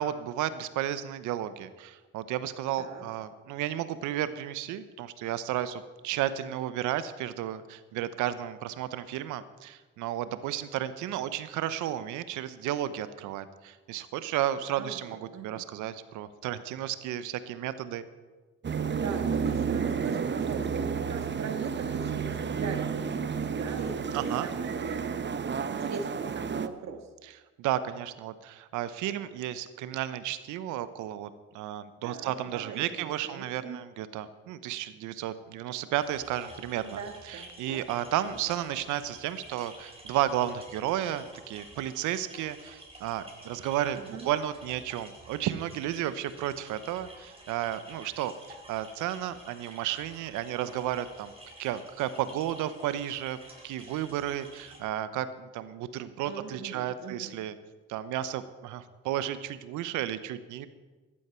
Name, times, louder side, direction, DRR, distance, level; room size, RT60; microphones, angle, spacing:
voice 1, 0.0-18.0 24.1-24.5 27.6-31.3 31.5-37.0 37.3-51.3 51.6-53.4 53.6-57.5 57.9-60.7, right 12 dB, 75° right, 14 dB, 0.9 m, -33 dB
voice 2, 14.8-15.6 18.9-25.2 25.7-27.1 32.0-33.8 36.9-37.8 44.0-44.3 56.2-57.4, right 5 dB, 60° right, 6 dB, 1.8 m, -40 dB
sound 1, 18.6-26.7, right 6 dB, 35° right, 1.0 m, -31 dB
sound 2, 36.0-54.8, right 1 dB, 20° right, 5.3 m, -50 dB
17.0 x 12.0 x 4.5 m, 1.3 s
hypercardioid pair, 55°, 30 cm